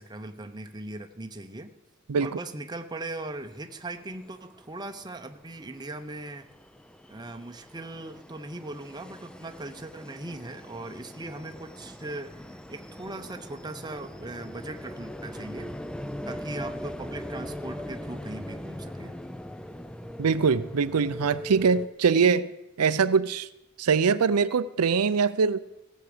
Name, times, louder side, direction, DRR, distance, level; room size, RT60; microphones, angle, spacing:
voice 1, 0.0-1.7 2.2-6.5 7.1-15.7 16.3-19.2, right 2 dB, 20° right, 0.8 m, -39 dB
sound 1, 3.2-3.3 3.6-21.9, left 1 dB, 5° left, 0.4 m, -41 dB
voice 2, 20.2-22.5 22.8-23.5 23.8-25.6, right 5 dB, 90° right, 0.5 m, -23 dB
16.5 x 7.3 x 6.6 m
head